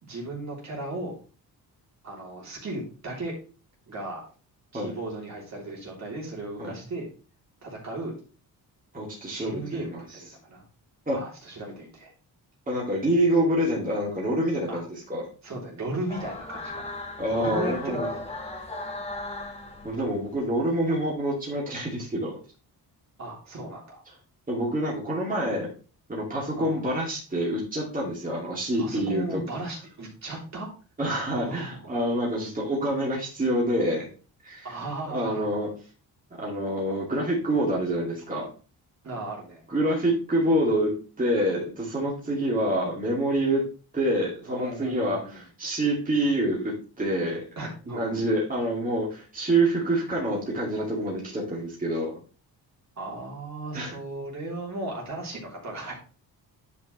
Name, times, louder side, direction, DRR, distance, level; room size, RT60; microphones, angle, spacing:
voice 1, 0.0-1.2 2.0-3.3 3.9-4.2 4.7-7.1 7.6-8.2 9.3-10.6 11.1-12.1 14.7-14.8 15.4-17.0 17.3-18.1 23.2-24.0 26.5-26.8 28.8-30.7 31.3-31.9 34.6-35.4 39.0-39.6 42.2-42.4 44.4-45.4 47.6-48.3 53.0-55.9, right 2 dB, 45° right, -2 dB, 3.3 m, -36 dB
voice 2, 8.9-10.0 11.1-11.2 12.7-14.8 15.1-15.2 17.2-18.1 19.8-22.4 24.5-25.7 26.1-29.4 31.0-34.1 34.4-34.7 35.1-35.7 36.4-38.5 39.7-43.6 43.9-47.4 48.0-52.1 53.7-53.9, right 1 dB, 20° right, -5 dB, 2.7 m, -26 dB
sound 1, 16.1-20.4, left 2 dB, 15° left, 1.6 m, -36 dB
10.5 x 5.3 x 3.2 m, 0.36 s
cardioid pair, 130°, 39 cm